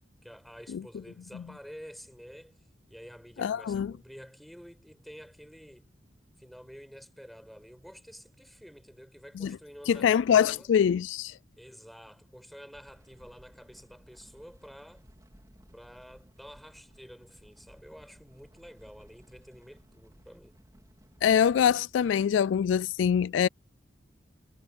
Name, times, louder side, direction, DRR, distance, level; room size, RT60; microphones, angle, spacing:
voice 1, 0.2-2.6 2.9-5.9 6.4-10.7 11.6-15.1 15.7-20.6, equal, ahead, 7.7 m, -50 dB
voice 2, 3.4-3.9 9.4-9.6 9.9-11.3 21.2-23.5, left 8 dB, 80° left, 0.3 m, -24 dB
sound 1, 12.7-21.8, equal, 20° right, 3.7 m, -58 dB
head